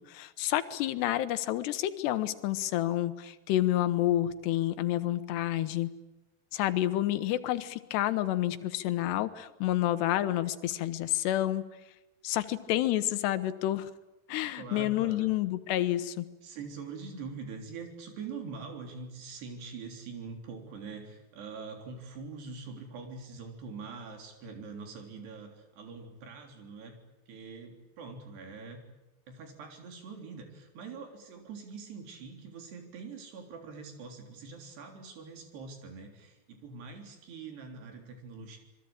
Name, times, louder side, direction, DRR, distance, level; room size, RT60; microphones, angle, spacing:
voice 1, 0.1-5.9 6.5-11.6 12.2-13.9 14.3-16.3, left 14 dB, 85° left, 12 dB, 3.2 m, -29 dB
voice 2, 14.6-15.3 15.8-15.9 16.4-27.0 27.3-28.8 29.3-38.6, right 4 dB, 80° right, 4 dB, 5.7 m, -44 dB
26.5 x 22.0 x 8.8 m, 1.0 s
omnidirectional pair, 4.7 m